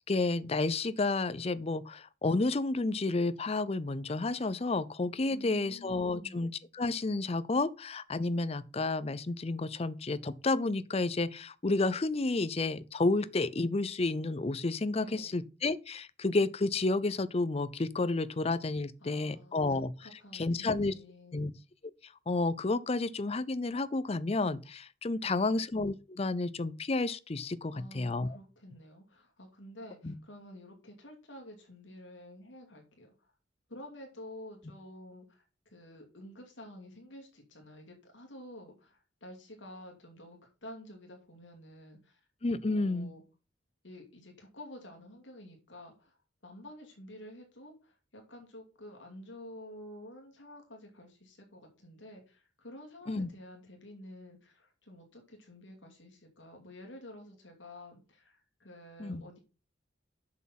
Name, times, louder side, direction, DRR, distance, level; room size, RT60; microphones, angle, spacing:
voice 1, 0.0-19.9 20.3-20.9 21.3-21.5 22.3-28.4 30.0-30.1 42.4-43.1 53.1-53.3 59.0-59.2, left 3 dB, 30° left, 0.5 m, -31 dB
voice 2, 5.3-6.4 15.0-15.4 19.0-21.5 25.2-25.6 27.7-33.3 33.7-42.2 42.7-43.2 43.8-46.2 46.4-59.4, left 1 dB, 80° left, 2.5 m, -50 dB
7.3 x 6.3 x 5.8 m
head